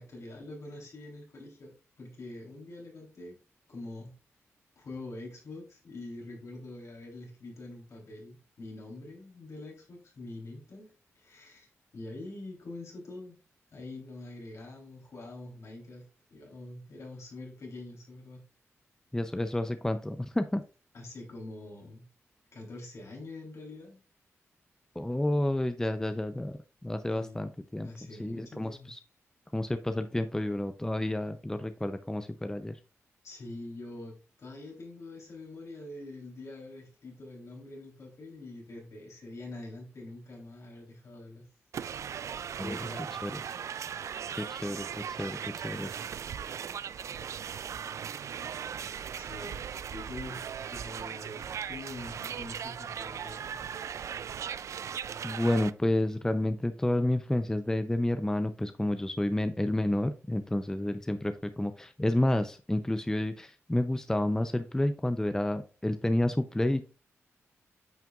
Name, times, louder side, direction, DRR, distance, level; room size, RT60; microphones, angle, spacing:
voice 1, 0.0-3.4 3.7-4.1 4.8-11.7 11.9-13.4 13.7-16.1 16.3-18.4 20.9-22.1 22.5-24.0 27.1-27.4 27.8-28.9 33.2-41.4 42.6-43.2 48.6-48.9 49.2-49.6 49.9-53.7, left 2 dB, 65° left, 0 dB, 3.5 m, -45 dB
voice 2, 19.1-20.6 25.0-27.9 28.2-29.0 29.5-32.8 42.6-42.8 43.2-43.4 44.4-45.9 55.2-66.8, left 1 dB, 10° left, 9 dB, 0.6 m, -30 dB
sound 1, 41.7-55.7, right 8 dB, 70° right, 0.3 m, -38 dB
9.0 x 5.7 x 2.4 m, 0.34 s
cardioid pair, 65°, 5 cm